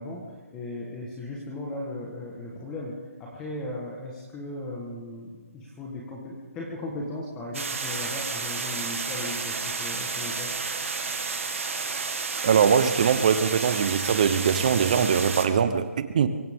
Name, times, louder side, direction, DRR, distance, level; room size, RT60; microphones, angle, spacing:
voice 1, 0.0-10.5, left 1 dB, 10° left, 1.5 m, -37 dB
sound 1, 7.5-15.5, right 4 dB, 60° right, 2.2 m, -31 dB
voice 2, 12.4-16.3, right 7 dB, 30° right, 0.9 m, -22 dB
23.5 x 15.5 x 3.7 m
hypercardioid pair, 170°, 8 cm